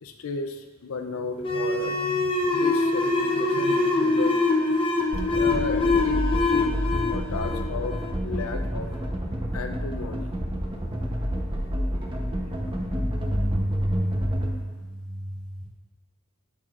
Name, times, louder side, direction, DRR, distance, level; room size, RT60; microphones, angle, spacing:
voice 1, 0.0-4.8 5.3-6.2 6.5-8.9 9.5-10.3, left 4 dB, 90° left, 6 dB, 0.5 m, -34 dB
sound 1, 1.4-8.6, left 3 dB, 25° left, 0.7 m, -24 dB
sound 2, 5.1-14.5, equal, 25° right, 0.8 m, -29 dB
voice 2, 12.4-15.6, equal, 65° right, -11 dB, 2.4 m, -29 dB
9.0 x 8.2 x 2.5 m, 1.4 s
head